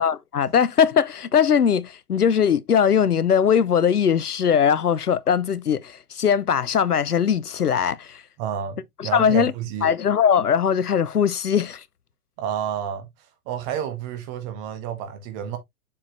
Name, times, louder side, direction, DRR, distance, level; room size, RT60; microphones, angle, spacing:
voice 1, 0.0-8.2 9.0-9.5 9.8-11.8, left 7 dB, 80° left, 0.8 m, -20 dB
voice 2, 8.4-9.9 12.4-13.1 13.5-15.6, right 9 dB, 25° right, 1.5 m, -30 dB
7.2 x 4.8 x 3.1 m
figure-of-eight pair, 115°, 45 cm